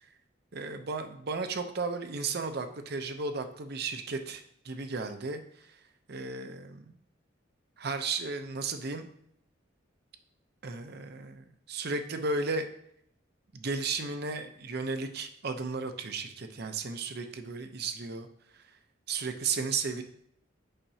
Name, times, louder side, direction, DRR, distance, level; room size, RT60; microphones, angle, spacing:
voice 1, 0.5-5.4 6.1-6.9 7.8-9.1 10.6-12.6 13.5-18.3 19.1-20.0, right 4 dB, 55° right, 7 dB, 0.7 m, -34 dB
8.8 x 5.8 x 2.8 m, 0.70 s
head